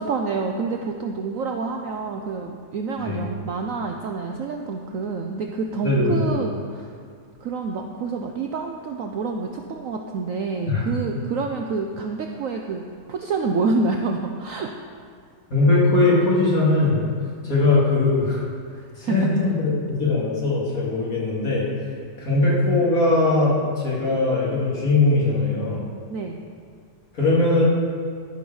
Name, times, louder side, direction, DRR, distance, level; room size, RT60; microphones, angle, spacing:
voice 1, 0.0-6.9 7.4-12.8 13.1-14.7 19.0-19.2 26.1-26.4, right 4 dB, 65° right, 3 dB, 0.8 m, -27 dB
voice 2, 5.8-6.4 10.7-10.9 15.5-17.0 17.4-18.4 19.0-21.9 22.2-25.8 27.1-27.7, left 2 dB, 50° left, -6 dB, 2.9 m, -20 dB
12.5 x 5.4 x 6.2 m, 2.2 s
omnidirectional pair, 2.0 m